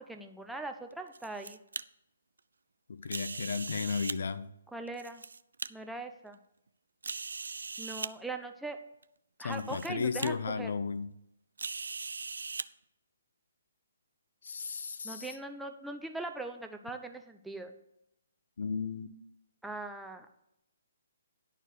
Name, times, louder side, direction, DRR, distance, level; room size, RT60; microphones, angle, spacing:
voice 1, 0.0-1.6 4.7-5.2 5.7-6.4 7.8-8.8 9.4-10.7 15.0-17.7 19.6-20.3, right 2 dB, 5° right, 4 dB, 0.6 m, -41 dB
sound 1, 0.9-1.8 3.1-4.2 4.9-5.7 6.3-6.4 7.0-8.1 9.0-9.1 9.5-9.9 10.2-10.3 11.6-12.7, right 4 dB, 75° right, 0.3 m, -39 dB
voice 2, 2.9-4.5 9.4-11.1 14.4-15.3 18.6-19.1, left 5 dB, 65° left, 13 dB, 0.6 m, -34 dB
11.0 x 4.5 x 6.6 m, 0.80 s
figure-of-eight pair, 140°, 0 cm